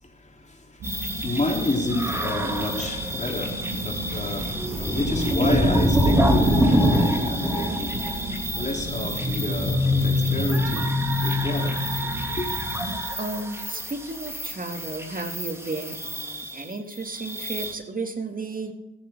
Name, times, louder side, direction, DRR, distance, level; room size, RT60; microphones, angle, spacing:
voice 1, 0.0-12.5, left 2 dB, 25° left, 3.8 m, -30 dB
sound 1, 0.8-17.7, equal, 10° right, 3.0 m, -25 dB
sound 2, 0.8-13.0, right 2 dB, 55° right, 2.4 m, -35 dB
voice 2, 4.1-4.5 13.2-18.7, right 3 dB, 25° right, 2.8 m, -33 dB
16.5 x 14.0 x 3.9 m
hypercardioid pair, 45°, 31 cm